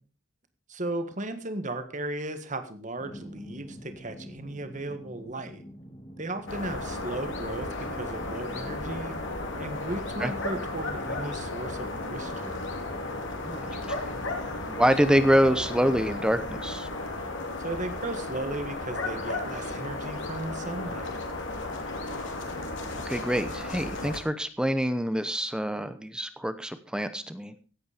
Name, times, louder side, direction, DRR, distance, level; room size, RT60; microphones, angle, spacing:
voice 1, 0.7-5.6 6.2-9.2 9.6-12.6 17.6-21.1, right 2 dB, 40° right, 9 dB, 1.7 m, -36 dB
sound 1, 3.0-16.5, equal, 25° left, 2.2 m, -46 dB
sound 2, 6.5-24.2, left 2 dB, 65° left, 2.9 m, -34 dB
voice 2, 14.7-16.9 23.0-27.5, equal, 5° right, 11 dB, 0.9 m, -26 dB
16.5 x 8.6 x 5.1 m, 0.38 s
head